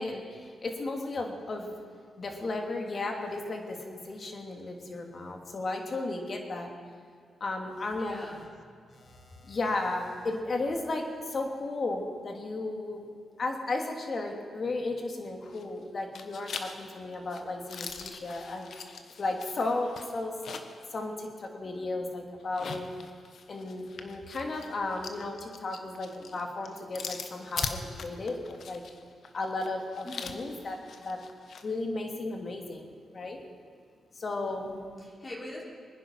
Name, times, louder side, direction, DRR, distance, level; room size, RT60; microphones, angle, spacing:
voice 1, 0.0-1.8 2.2-6.7 7.4-8.2 8.9-13.0 13.4-18.7 19.2-20.6 20.9-22.9 23.5-28.8 29.3-31.2 31.6-33.4 34.1-34.8, left 2 dB, 50° left, 2 dB, 2.8 m, -34 dB
voice 2, 7.9-8.4 30.0-30.4 34.5-35.6, left 1 dB, 35° left, -4 dB, 4.4 m, -43 dB
sound 1, 15.4-15.8 16.1-20.9 21.2-21.3 22.4-31.7, left 5 dB, 65° left, 1.3 m, -41 dB
23.5 x 10.0 x 5.8 m, 2.2 s
cardioid pair, 65°, 0 cm